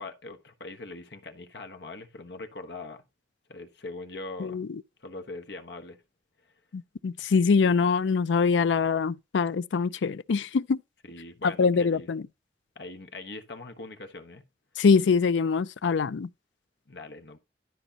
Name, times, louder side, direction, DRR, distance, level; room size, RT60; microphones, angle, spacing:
voice 1, 0.0-3.0 3.5-4.6 5.0-6.0 7.6-7.9 9.9-10.0 11.0-12.1 12.7-14.4 16.9-17.4, left 2 dB, 65° left, 1.3 m, -41 dB
voice 2, 6.7-10.8 11.6-12.2 14.8-16.3, left 5 dB, 85° left, 0.4 m, -24 dB
12.5 x 5.3 x 2.9 m
head